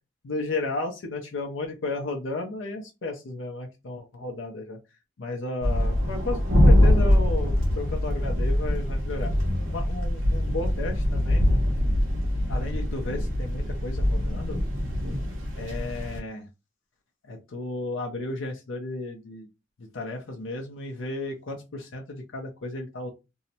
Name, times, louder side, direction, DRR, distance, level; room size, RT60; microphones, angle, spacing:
voice 1, 0.2-4.8 5.2-9.3 9.7-11.5 12.5-14.6 15.5-16.5 17.2-19.5 19.8-23.1, left 2 dB, 85° left, 2 dB, 0.5 m, -33 dB
sound 1, 5.6-16.2, left 1 dB, 85° right, 0.8 m, -23 dB
2.6 x 2.0 x 2.7 m, 0.26 s
head